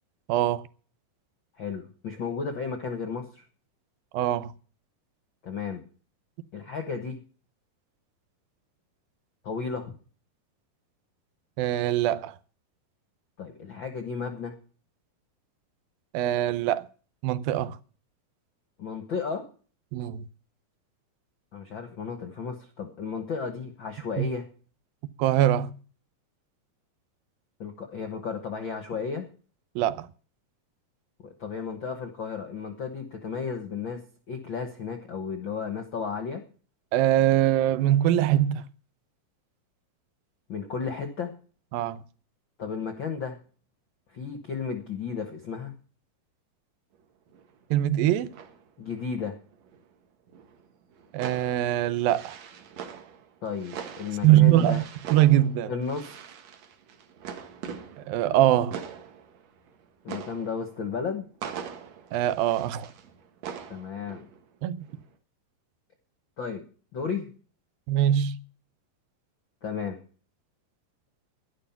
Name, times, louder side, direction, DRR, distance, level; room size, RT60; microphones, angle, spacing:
voice 1, 0.3-0.6 4.1-4.5 11.6-12.4 16.1-16.9 17.2-17.8 19.9-20.3 24.2-24.3 25.2-25.7 29.8-30.1 36.9-38.6 41.7-42.0 47.7-48.3 51.1-52.4 54.2-54.8 55.1-55.7 58.1-58.8 62.1-62.9 64.6-64.9 67.9-68.4, right 13 dB, 85° right, 2.6 m, -22 dB
voice 2, 1.6-3.4 5.4-5.8 6.5-7.2 9.4-9.9 13.4-14.5 18.8-19.4 21.5-24.4 27.6-29.3 31.2-36.4 40.5-41.3 42.6-43.4 44.1-45.7 48.8-49.4 53.4-54.8 55.7-56.1 60.0-61.3 63.7-64.2 66.4-66.6 66.9-67.3 69.6-70.0, left 5 dB, 65° left, 1.1 m, -33 dB
sound 1, 47.0-47.1 47.3-49.9 50.3-64.6 64.8-65.1, right 7 dB, 55° right, 2.3 m, -43 dB
11.5 x 11.5 x 5.8 m
omnidirectional pair, 4.1 m